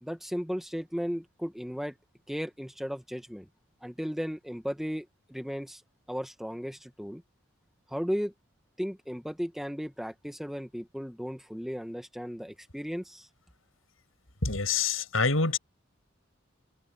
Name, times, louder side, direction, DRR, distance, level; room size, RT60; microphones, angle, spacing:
voice 1, 0.0-2.0 2.3-3.5 3.8-5.8 6.1-7.2 7.9-8.3 8.8-13.3, equal, ahead, 1.5 m, -35 dB
voice 2, 14.4-15.6, left 4 dB, 90° left, 6.7 m, -26 dB
head